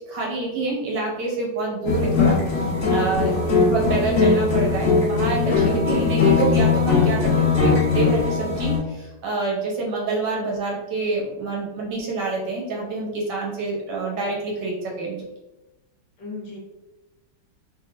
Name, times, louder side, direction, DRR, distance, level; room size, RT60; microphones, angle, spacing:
voice 1, 0.1-2.4 2.9-15.2, right 3 dB, 65° right, -2 dB, 1.3 m, -27 dB
sound 1, 1.8-8.8, left 4 dB, 50° left, 1.0 m, -20 dB
voice 2, 5.4-5.9 16.2-16.6, left 3 dB, 65° left, -2 dB, 1.4 m, -31 dB
3.6 x 3.3 x 2.3 m, 1.0 s
omnidirectional pair, 2.2 m